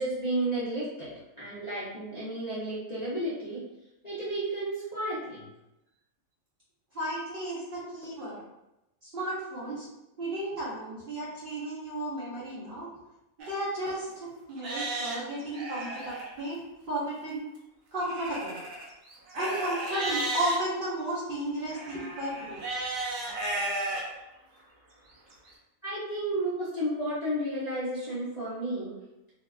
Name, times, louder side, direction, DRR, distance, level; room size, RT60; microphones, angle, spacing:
voice 1, 0.0-3.6 4.0-5.4 7.8-7.9 25.8-29.0, right 1 dB, 45° left, -11 dB, 0.6 m, -32 dB
voice 2, 6.9-8.4 9.0-9.9 10.2-12.9 13.4-16.6 16.9-17.4 17.9-18.6 19.3-22.6, right 1 dB, 50° right, -8 dB, 0.7 m, -33 dB
Livestock farm animals working animals, 13.4-13.5 14.1-14.2 14.6-16.3 18.0-20.6 21.7-24.0 24.6-24.7 25.3-25.4, right 2 dB, 85° right, 1.0 m, -34 dB
2.7 x 2.3 x 2.3 m, 0.92 s
omnidirectional pair, 1.4 m